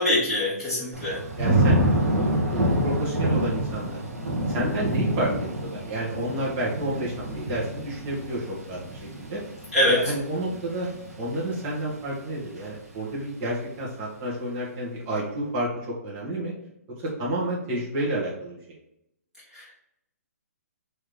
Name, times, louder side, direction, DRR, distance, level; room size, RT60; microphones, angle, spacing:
voice 1, 0.0-1.3 9.7-10.0 19.5-19.7, left 1 dB, 5° right, -10 dB, 1.4 m, -24 dB
Thunder / Rain, 0.9-11.9 12.3-12.7, right 1 dB, 70° right, 1.3 m, -27 dB
voice 2, 1.4-4.0 4.5-9.4 9.9-10.9 11.2-16.5 17.0-18.8, right 1 dB, 30° right, -5 dB, 1.5 m, -30 dB
3.7 x 3.2 x 3.2 m, 0.83 s
hypercardioid pair, 155°, 9 cm